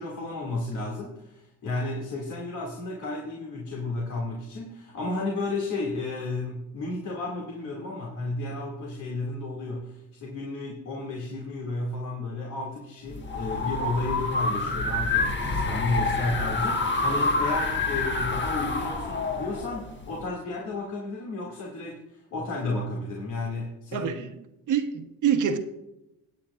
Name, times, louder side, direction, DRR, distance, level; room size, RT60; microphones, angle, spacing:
voice 1, 0.0-24.1, left 2 dB, 65° left, -3 dB, 2.5 m, -32 dB
sound 1, 13.1-20.3, left 3 dB, 35° left, 1.5 m, -27 dB
voice 2, 23.9-24.3 24.7-25.6, right 8 dB, 65° right, 7 dB, 1.1 m, -25 dB
18.0 x 8.8 x 2.5 m, 0.90 s
cardioid pair, 90°, 32 cm